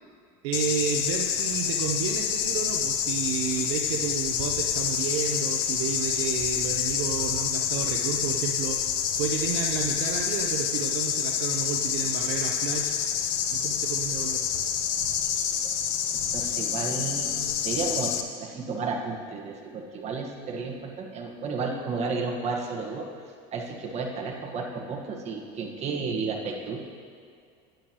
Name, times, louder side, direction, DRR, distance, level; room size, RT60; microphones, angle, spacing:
voice 1, 0.4-8.8 9.2-13.0 13.5-14.6, right 7 dB, 85° right, 1 dB, 0.7 m, -31 dB
sound 1, 0.5-18.2, left 8 dB, 80° left, 0.7 m, -27 dB
voice 2, 16.3-18.1 18.4-23.1 23.5-26.8, right 4 dB, 40° right, 0 dB, 1.4 m, -32 dB
11.5 x 9.0 x 2.9 m, 2.2 s
supercardioid pair, 120°, 17 cm